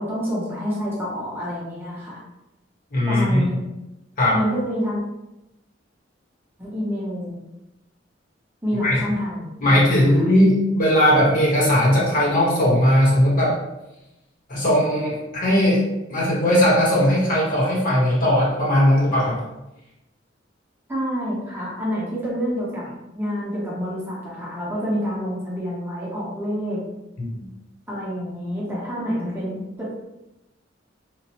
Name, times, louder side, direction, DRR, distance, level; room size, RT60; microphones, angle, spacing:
voice 1, 0.0-2.2 3.1-3.6 4.3-5.0 6.6-7.4 8.6-10.3 20.9-22.9 23.1-26.8 27.9-29.9, equal, 10° right, -6 dB, 0.7 m, -27 dB
voice 2, 2.9-3.4 4.2-4.4 8.8-9.0 9.6-13.5 14.5-15.8 16.1-19.4 27.3-27.4, left 1 dB, 50° left, -6 dB, 1.0 m, -18 dB
2.9 x 2.0 x 2.9 m, 0.94 s
head